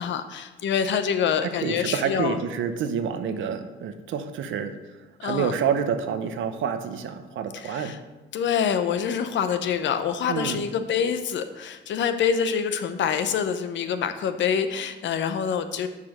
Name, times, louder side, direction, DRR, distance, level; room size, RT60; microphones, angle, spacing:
voice 1, 0.0-2.4 5.2-5.5 7.5-8.0 8.3-15.9, left 7 dB, 70° left, 9 dB, 0.8 m, -26 dB
voice 2, 1.4-4.7 5.2-7.9 10.3-10.6, right 7 dB, 75° right, 9 dB, 0.8 m, -28 dB
6.9 x 5.0 x 6.4 m, 1.2 s
cardioid pair, 90°, 20 cm